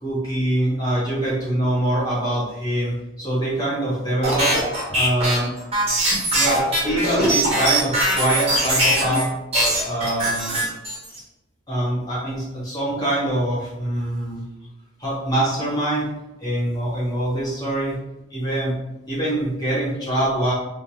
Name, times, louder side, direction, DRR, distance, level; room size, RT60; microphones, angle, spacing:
voice 1, 0.0-4.5 4.9-5.5 6.3-9.3 9.8-10.6 11.7-14.4 15.0-16.1 16.4-18.0 18.3-18.7 19.1-20.5, right 1 dB, 20° left, -7 dB, 1.1 m, -24 dB
sound 1, 4.2-9.2 9.5-11.2, right 1 dB, 30° right, 0.8 m, -21 dB
2.4 x 2.2 x 3.1 m, 0.98 s
head